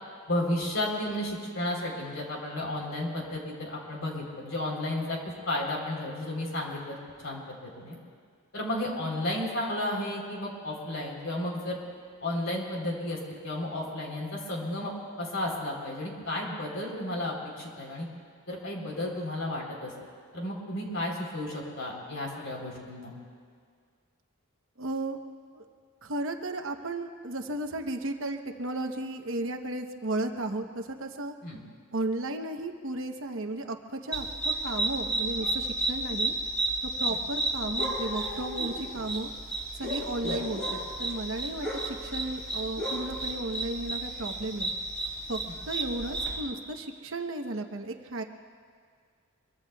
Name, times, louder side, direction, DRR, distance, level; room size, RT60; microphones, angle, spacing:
voice 1, 0.3-7.0 7.2-8.0 8.5-11.8 12.2-18.1 18.5-19.9 20.3-23.1 31.4-31.6 40.2-40.4, left 1 dB, 65° left, -1 dB, 3.7 m, -33 dB
voice 2, 24.8-25.2 25.5-25.6 26.0-31.3 31.9-36.3 36.8-39.3 39.7-44.7 45.3-45.4 45.7-48.2, right 2 dB, 65° right, 4 dB, 1.0 m, -34 dB
sound 1, 34.1-46.4, right 1 dB, 5° left, 4.5 m, -32 dB
24.5 x 23.5 x 2.3 m, 2.1 s
head